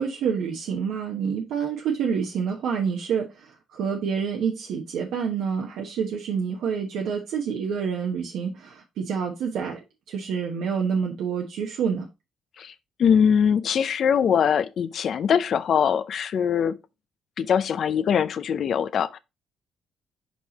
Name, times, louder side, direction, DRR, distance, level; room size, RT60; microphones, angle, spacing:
voice 1, 0.0-3.3 3.7-9.8 10.1-12.1, right 6 dB, 80° right, 1.0 m, -27 dB
voice 2, 13.0-16.8 17.4-19.2, left 7 dB, 60° left, 0.6 m, -22 dB
5.3 x 4.9 x 4.0 m
cardioid pair, 90°, 0 cm